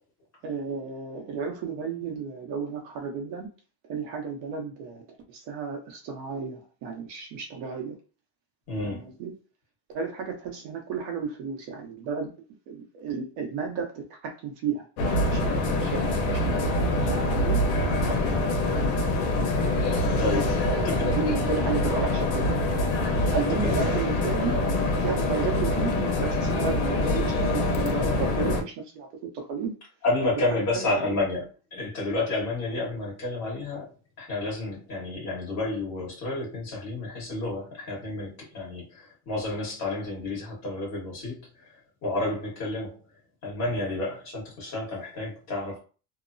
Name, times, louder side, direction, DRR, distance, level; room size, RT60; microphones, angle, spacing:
voice 1, 0.4-3.5 3.9-5.0 5.3-8.0 8.8-9.3 9.9-12.4 12.7-14.9 15.3-16.7 17.0-17.6 20.3-22.7 23.3-24.6 25.0-29.1 29.3-29.7 30.3-30.4 30.7-31.2, right 5 dB, 70° right, 0.9 m, -33 dB
voice 2, 8.7-9.1 18.0-18.6 20.2-20.4 20.8-21.1 23.6-23.7 24.4-24.6 30.0-33.9 34.2-41.4 42.0-43.0 43.4-45.8, left 2 dB, 35° left, 1.4 m, -30 dB
sound 1, 15.0-28.6, left 2 dB, 85° left, 0.9 m, -25 dB
2.9 x 2.0 x 2.5 m
cardioid pair, 175°, 46 cm